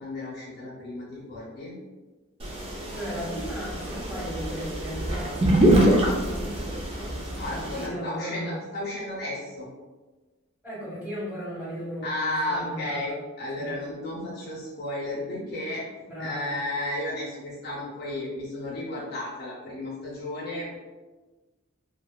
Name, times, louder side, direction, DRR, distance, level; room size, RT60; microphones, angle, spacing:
voice 1, 0.0-1.7 7.4-9.7 12.0-15.8 16.2-20.8, left 1 dB, 50° left, -6 dB, 0.6 m, -33 dB
sound 1, 2.4-7.9, right 1 dB, 25° right, 0.3 m, -25 dB
voice 2, 2.5-5.9 6.3-8.5 10.6-13.2 13.5-13.7 16.1-16.5, equal, 5° right, -9 dB, 1.1 m, -36 dB
2.7 x 2.1 x 2.2 m, 1.2 s
head